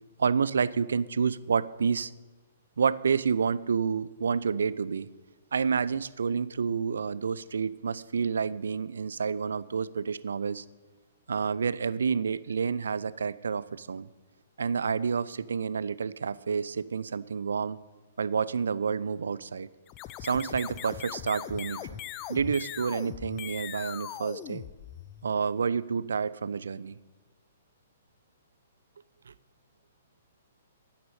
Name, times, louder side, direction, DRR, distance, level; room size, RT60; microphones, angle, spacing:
voice 1, 0.2-2.1 2.8-5.1 5.5-10.6 11.3-14.1 14.6-17.8 18.2-19.7 20.2-22.0 22.3-24.6 25.2-27.0 29.3-29.4, right 6 dB, 70° right, 18 dB, 0.5 m, -29 dB
sound 1, 19.9-25.3, left 13 dB, 30° left, 0.6 m, -40 dB
9.9 x 9.4 x 8.3 m, 1.2 s
figure-of-eight pair, 120°, 0 cm